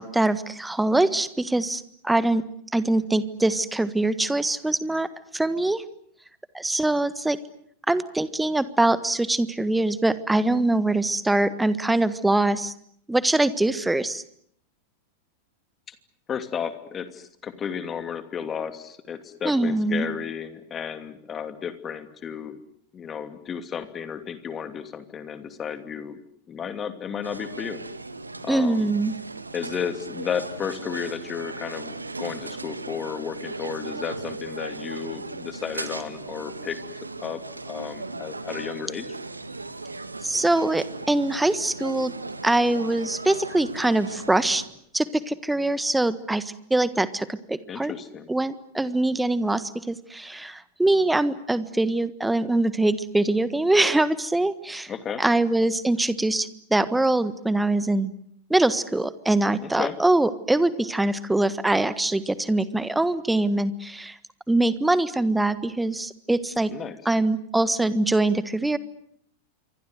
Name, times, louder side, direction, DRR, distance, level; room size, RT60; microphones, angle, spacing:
voice 1, 0.0-2.4 2.7-5.1 5.3-5.8 6.5-7.4 7.9-12.7 13.1-14.2 19.4-20.1 28.5-29.1 40.2-42.1 42.4-44.6 44.9-47.9 48.3-54.9 55.2-58.1 58.5-64.2 64.5-66.7 67.0-68.8, right 2 dB, 5° right, 15 dB, 1.5 m, -23 dB
voice 2, 16.3-22.6 22.9-26.2 26.5-27.8 28.4-28.9 29.5-36.8 37.2-37.4 37.7-39.1 47.7-48.3 54.9-55.2 59.6-60.0 66.7-67.0, left 7 dB, 25° left, 10 dB, 2.7 m, -33 dB
sound 1, 27.2-44.7, right 3 dB, 80° right, 1.7 m, -37 dB
27.5 x 24.0 x 8.1 m, 0.67 s
figure-of-eight pair, 90°, 0 cm